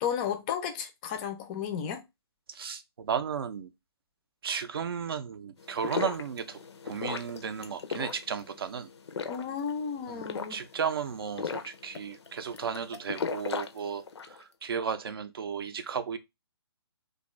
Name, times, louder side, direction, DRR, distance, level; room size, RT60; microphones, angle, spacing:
voice 1, 0.0-2.0 9.3-10.6, left 7 dB, 20° left, 0.4 m, -33 dB
voice 2, 2.5-3.7 4.4-8.9 10.1-16.2, right 7 dB, 60° right, 0.5 m, -34 dB
sound 1, 5.6-14.4, left 5 dB, 80° left, 0.5 m, -37 dB
2.6 x 2.3 x 3.0 m
hypercardioid pair, 150°, 14 cm